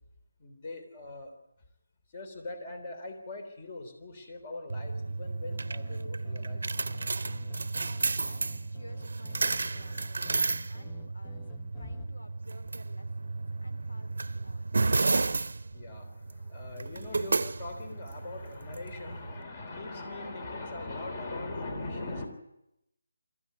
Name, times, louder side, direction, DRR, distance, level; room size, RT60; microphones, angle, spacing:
voice 1, 0.4-1.3 2.1-6.7 11.8-12.0 15.1-22.3, left 2 dB, 30° left, 6 dB, 3.5 m, -41 dB
sound 1, 4.7-19.4, right 3 dB, 70° right, 0.7 m, -33 dB
sound 2, 5.5-12.1, left 5 dB, 15° left, 0.8 m, -52 dB
voice 2, 8.1-14.7, left 1 dB, 80° left, 6 dB, 3.1 m, -55 dB
24.5 x 14.5 x 9.5 m, 0.85 s
figure-of-eight pair, 165°, 0 cm